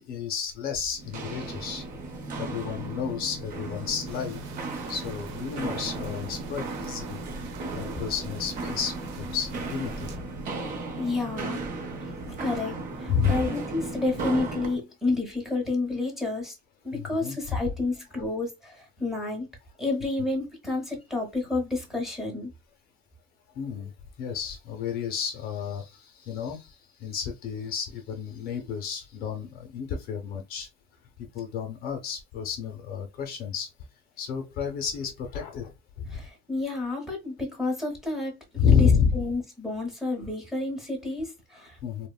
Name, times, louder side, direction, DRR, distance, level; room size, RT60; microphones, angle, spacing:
voice 1, 0.0-1.8 2.4-4.4 4.9-7.2 7.7-10.1 13.1-13.4 16.9-17.6 23.6-23.9 24.2-26.7 27.0-30.7 31.2-33.7 34.2-35.7 36.0-36.2 38.6-39.2 41.8-42.1, left 7 dB, 50° left, 0.6 m, -30 dB
Walk footsteps, 1.0-14.8, right 3 dB, 40° right, 0.7 m, -35 dB
sound 1, 4.1-10.2, right 3 dB, 85° right, 0.6 m, -44 dB
voice 2, 10.8-11.6 12.2-16.5 16.8-19.5 19.8-22.5 36.1-38.4 38.7-38.9 39.1-41.8, left 3 dB, ahead, 0.8 m, -30 dB
3.0 x 2.1 x 2.2 m
cardioid pair, 160°, 20 cm